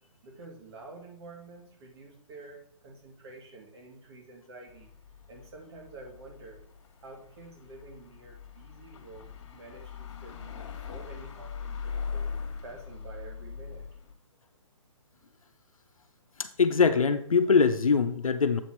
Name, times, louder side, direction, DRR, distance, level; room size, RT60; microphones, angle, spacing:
voice 1, 0.2-4.9 5.3-6.6 7.0-12.3 12.6-13.9, right 3 dB, 50° right, 0 dB, 2.4 m, -49 dB
sound 1, 4.7-14.1, left 6 dB, 60° left, 1.6 m, -41 dB
voice 2, 16.4-18.6, left 5 dB, 90° left, 9 dB, 0.8 m, -23 dB
7.8 x 4.2 x 4.6 m, 0.63 s
hypercardioid pair, 145°, 17 cm